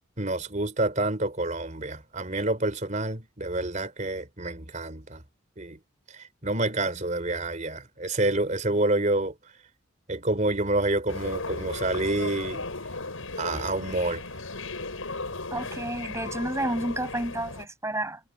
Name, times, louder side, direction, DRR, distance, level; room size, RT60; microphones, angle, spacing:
voice 1, 0.2-5.2 5.6-5.8 6.1-9.4 10.1-12.7 13.4-14.2, right 2 dB, 35° right, 3.8 m, -28 dB
sound 1, 11.1-17.7, left 3 dB, 85° left, 6.6 m, -36 dB
voice 2, 15.5-18.2, right 1 dB, 15° right, 6.0 m, -30 dB
head